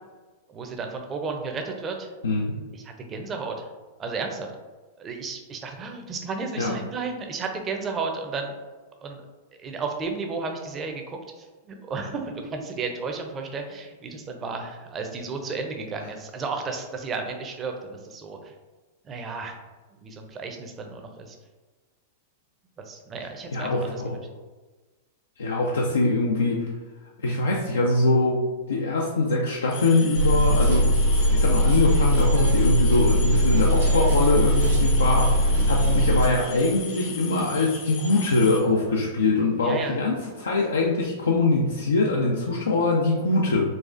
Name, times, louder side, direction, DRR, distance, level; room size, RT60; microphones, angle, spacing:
voice 1, 0.5-2.1 2.7-3.7 4.0-4.5 5.0-8.5 9.0-9.2 9.6-18.5 19.0-19.6 20.0-21.4 22.8-24.0 39.6-40.0, right 4 dB, 25° right, 3 dB, 0.5 m, -33 dB
voice 2, 2.2-2.5 6.6-6.7 23.5-24.2 25.4-26.7 27.2-28.4 28.7-31.0 31.3-43.6, left 2 dB, 80° left, -1 dB, 0.4 m, -23 dB
sound 1, 29.7-38.6, left 5 dB, 45° left, 0.8 m, -37 dB
sound 2, 30.1-36.3, equal, 70° right, 0.7 m, -20 dB
4.0 x 2.4 x 2.5 m, 1.3 s
figure-of-eight pair, 100°, 0 cm